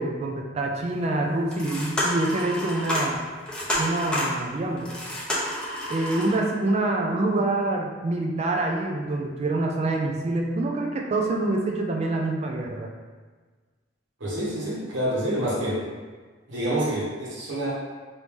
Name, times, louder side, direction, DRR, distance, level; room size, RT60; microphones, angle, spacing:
voice 1, 0.0-3.2 3.8-4.9 5.9-12.9, right 2 dB, 35° right, 0 dB, 0.3 m, -26 dB
sound 1, 0.8-0.9 1.4-6.4, equal, 5° left, 0.7 m, -29 dB
voice 2, 14.2-15.8 16.5-17.7, right 1 dB, 75° right, -6 dB, 1.1 m, -27 dB
3.0 x 2.7 x 3.5 m, 1.4 s
head